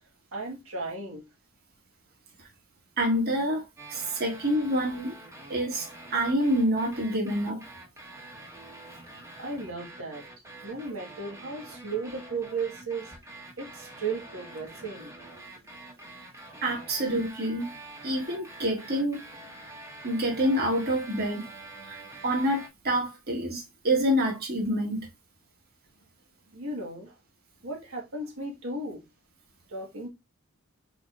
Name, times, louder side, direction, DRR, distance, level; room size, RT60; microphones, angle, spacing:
voice 1, 0.3-1.2 9.4-10.2 10.6-13.1 13.6-15.5 26.5-27.2 27.6-29.0 29.7-30.1, right 3 dB, 85° right, 1.7 m, -35 dB
voice 2, 3.0-5.1 5.5-7.6 16.6-17.7 18.0-19.3 20.0-21.5 21.8-25.1, equal, 50° right, 1.7 m, -27 dB
sound 1, 3.8-22.7, right 2 dB, 15° right, 1.3 m, -46 dB
4.7 x 3.9 x 2.5 m
head